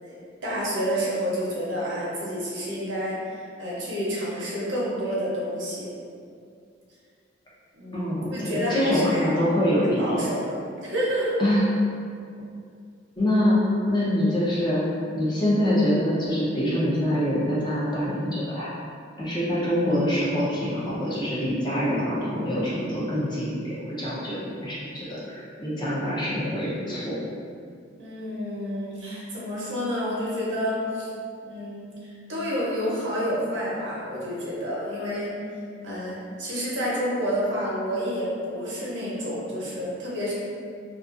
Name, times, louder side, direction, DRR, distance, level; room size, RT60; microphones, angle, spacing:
voice 1, 0.0-5.9 7.7-9.4 10.0-10.6 10.8-11.4 28.0-31.1 31.4-35.4 35.8-40.3, equal, 75° right, -6 dB, 0.7 m, -29 dB
voice 2, 7.9-10.2 11.4-11.6 13.2-14.8 15.1-18.7 19.2-27.2, equal, 25° left, -8 dB, 0.6 m, -25 dB
2.4 x 2.3 x 2.4 m, 2.3 s
head